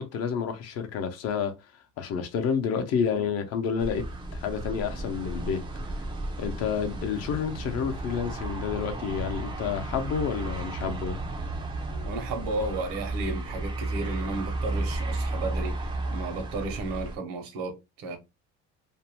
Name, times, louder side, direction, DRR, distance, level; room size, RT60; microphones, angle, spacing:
voice 1, 0.0-1.5 2.0-4.0 4.3-5.6 6.4-11.2, left 7 dB, 50° left, 0.6 m, -29 dB
sound 1, 3.8-17.2, right 2 dB, 15° right, 0.4 m, -33 dB
voice 2, 11.9-18.2, right 3 dB, 85° right, 0.9 m, -34 dB
2.6 x 2.1 x 3.0 m
cardioid pair, 145°, 32 cm